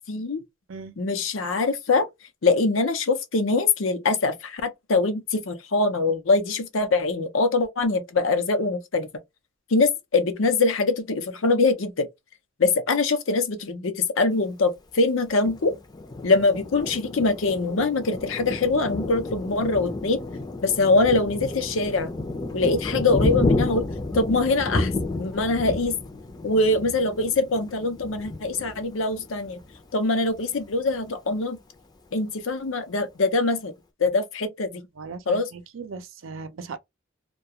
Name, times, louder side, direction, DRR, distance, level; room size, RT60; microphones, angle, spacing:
voice 1, 0.1-0.4 1.0-2.1 2.4-9.1 9.7-12.1 12.6-15.7 16.2-20.2 20.6-22.1 22.5-23.9 24.1-24.9 25.2-25.9 26.4-29.6 29.9-31.6 32.1-33.7 34.0-34.8 35.3-35.5, left 3 dB, 85° left, 0.6 m, -23 dB
Thunder, 15.4-29.8 30.2-30.4 30.7-31.3, left 2 dB, 20° left, 0.5 m, -31 dB
voice 2, 35.0-36.8, right 4 dB, 90° right, 0.5 m, -38 dB
2.3 x 2.3 x 2.8 m
head